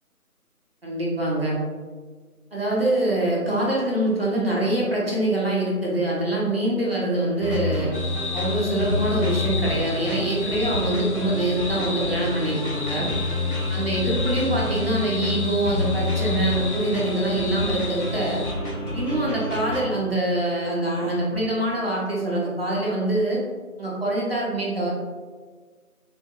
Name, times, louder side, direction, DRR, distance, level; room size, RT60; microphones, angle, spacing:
voice 1, 0.8-1.6 2.5-7.9 8.3-13.1 13.7-18.4 18.9-23.4 23.8-24.9, right 1 dB, 40° right, -6 dB, 0.7 m, -24 dB
sound 1, 7.4-19.9, left 2 dB, 80° left, 1.1 m, -28 dB
sound 2, 7.9-18.5, left 4 dB, 50° left, 0.7 m, -34 dB
3.7 x 2.5 x 2.3 m, 1.5 s
figure-of-eight pair, 175°, 44 cm